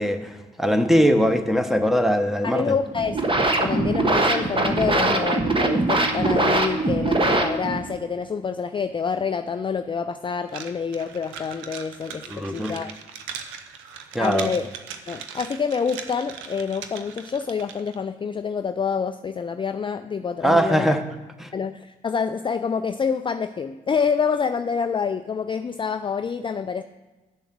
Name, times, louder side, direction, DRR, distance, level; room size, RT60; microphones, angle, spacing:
voice 1, 0.0-2.6 12.3-12.7 14.1-14.5 20.4-21.0 21.4-21.5, equal, ahead, 6 dB, 1.1 m, -21 dB
voice 2, 2.4-12.9 14.2-14.7 15.1-21.0 21.5-26.8, left 6 dB, 25° left, 10 dB, 0.4 m, -27 dB
sound 1, 2.9-7.9, right 2 dB, 25° right, 1.3 m, -22 dB
sound 2, 10.5-18.0, right 7 dB, 75° right, 0.7 m, -39 dB
8.1 x 7.0 x 6.0 m, 1.2 s
hypercardioid pair, 45°, 20 cm